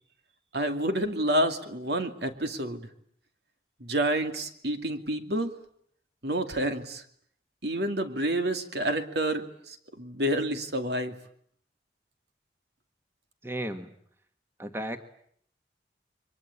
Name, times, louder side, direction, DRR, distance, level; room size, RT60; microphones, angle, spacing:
voice 1, 0.5-2.9 3.8-5.5 6.2-7.0 7.6-11.2, right 1 dB, 70° right, 7 dB, 2.6 m, -29 dB
voice 2, 13.4-13.9 14.6-15.0, right 1 dB, 15° right, 7 dB, 1.5 m, -34 dB
29.5 x 23.5 x 8.5 m, 0.66 s
head